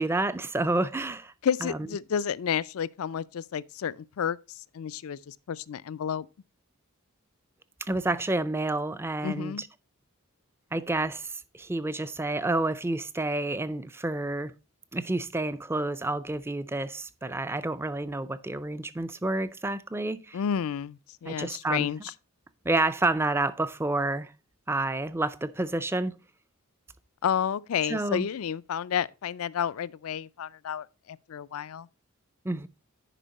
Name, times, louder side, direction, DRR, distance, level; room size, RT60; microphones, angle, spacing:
voice 1, 0.0-1.3 1.6-1.8 7.9-9.7 10.7-14.5 14.9-20.4 21.3-21.9 22.6-24.3 24.7-26.2 27.9-28.3 32.4-32.7, right 2 dB, 10° right, 0.4 m, -29 dB
voice 2, 1.4-4.4 4.7-6.3 9.2-9.6 20.3-22.1 27.2-31.9, left 8 dB, 75° left, 0.4 m, -31 dB
10.0 x 5.1 x 4.0 m
head